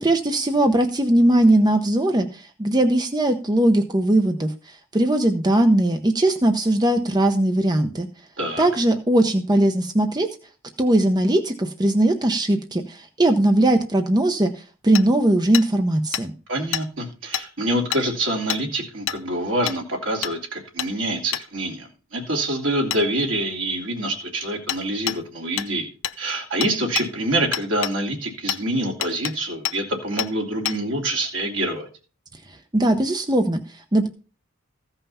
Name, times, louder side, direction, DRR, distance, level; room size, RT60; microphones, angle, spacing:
voice 1, 0.0-8.1 8.6-10.3 10.8-16.3 32.7-34.1, right 1 dB, 20° right, 6 dB, 0.8 m, -19 dB
voice 2, 8.4-8.7 16.5-25.9 26.2-31.9, right 1 dB, 70° right, 0 dB, 3.0 m, -26 dB
Hammer, 15.0-15.1 15.5-15.7 16.1-16.2 16.7-16.9 17.3-17.5 17.9-18.0 18.5-18.6 19.1-19.2 19.7-19.8 20.2-20.4 20.8-20.9 21.3-21.5 22.9-23.0 24.7-24.8 25.1-25.2 25.6-25.7 26.0-26.2 26.6-27.1 27.5-28.0 28.5-28.6 29.0-29.3 29.7-29.8 30.2-30.3 30.7-30.8, left 11 dB, 75° left, 0.8 m, -27 dB
15.0 x 5.6 x 5.6 m, 0.37 s
head